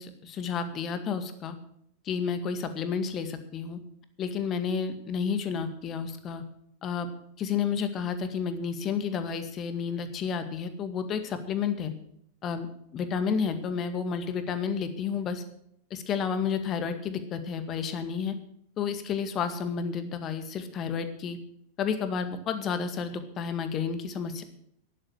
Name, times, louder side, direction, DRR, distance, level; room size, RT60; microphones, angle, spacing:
voice 1, 0.0-1.6 2.1-3.8 4.2-6.4 6.8-7.1 7.4-11.9 12.4-12.7 12.9-15.4 15.9-18.4 18.8-21.4 21.8-24.4, left 6 dB, 30° left, 9 dB, 1.9 m, -31 dB
12.0 x 11.0 x 6.7 m, 0.69 s
figure-of-eight pair, 90°, 0 cm